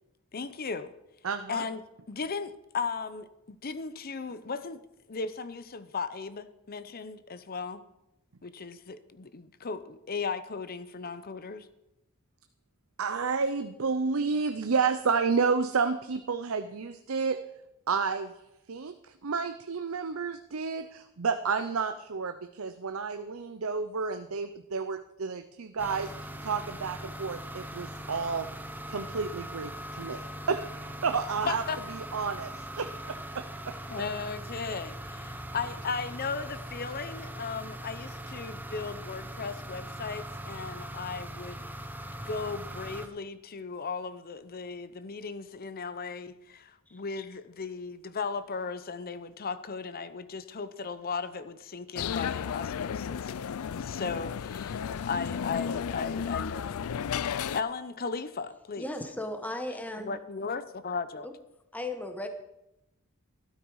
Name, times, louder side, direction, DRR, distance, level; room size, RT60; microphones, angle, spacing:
voice 1, 0.3-0.9 1.5-1.8 2.1-4.8 5.1-7.8 8.4-11.7 31.5-31.8 33.9-41.7 42.3-53.3 53.7-58.9 60.0-61.3, left 5 dB, 45° left, 13 dB, 0.7 m, -36 dB
voice 2, 1.2-1.7 13.0-17.4 17.9-18.3 18.7-28.5 28.9-30.2 30.5-31.6 32.0-33.7, right 5 dB, 70° right, 9 dB, 0.7 m, -31 dB
sound 1, 25.8-43.1, right 1 dB, 10° right, 0.9 m, -41 dB
sound 2, 52.0-57.6, left 7 dB, 85° left, 0.4 m, -33 dB
voice 3, 58.8-60.2 61.2-61.3 61.7-62.3, left 1 dB, 5° left, 6 dB, 1.2 m, -36 dB
13.0 x 12.0 x 4.8 m, 0.88 s
head